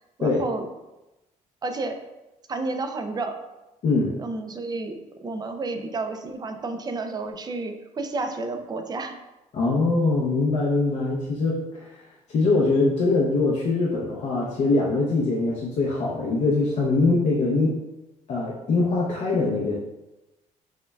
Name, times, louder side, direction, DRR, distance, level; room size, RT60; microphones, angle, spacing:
voice 1, 0.2-0.7 1.6-2.0 2.5-3.4 4.2-9.2, right 3 dB, 30° right, 6 dB, 0.4 m, -31 dB
voice 2, 9.5-12.0 12.3-17.8 18.3-19.8, left 3 dB, 55° left, -4 dB, 0.6 m, -23 dB
6.2 x 2.2 x 2.2 m, 1.0 s
cardioid pair, 110°, 13 cm